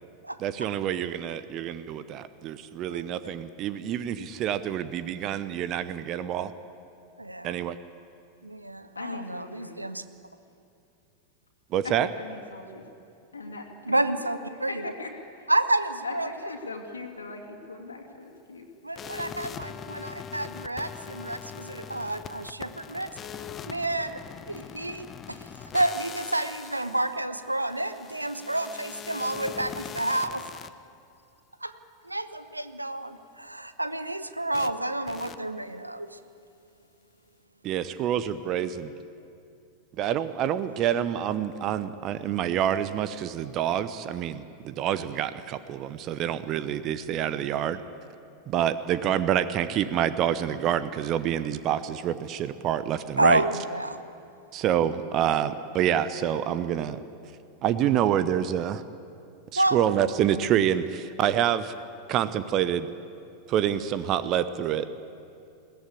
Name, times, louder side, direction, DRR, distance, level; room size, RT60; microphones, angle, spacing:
voice 1, 0.4-6.5 7.4-7.8 11.7-12.1 37.6-38.9 40.0-47.8 48.5-53.4 54.5-57.0 57.6-58.8 59.5-61.7 62.1-62.9 63.5-64.9, right 10 dB, 35° right, 14 dB, 0.8 m, -27 dB
voice 2, 7.2-7.5 8.4-10.0 13.9-14.8 15.5-16.3 18.8-23.1 23.6-25.4 25.7-30.4 31.6-31.7 32.0-36.2 53.2-54.0 59.6-59.8, right 1 dB, 85° right, 11 dB, 1.0 m, -29 dB
voice 3, 9.0-9.9 11.8-12.9 13.3-14.2 14.5-15.5 16.0-18.6, left 3 dB, 75° left, 1 dB, 2.4 m, -40 dB
sound 1, 19.0-30.7 34.5-34.7 35.1-35.4, left 8 dB, 25° left, 0.8 m, -41 dB
21.5 x 17.0 x 8.4 m, 2.6 s
figure-of-eight pair, 90°, 0 cm